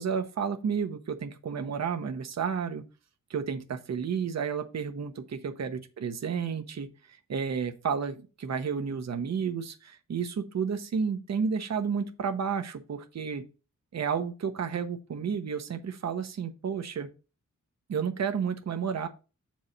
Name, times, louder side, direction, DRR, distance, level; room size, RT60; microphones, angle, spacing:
voice 1, 0.0-2.8 3.3-5.1 5.4-13.5 13.9-17.1 17.9-19.1, right 6 dB, 55° right, 8 dB, 0.9 m, -31 dB
7.7 x 4.7 x 4.1 m, 0.32 s
wide cardioid pair, 135°, 31 cm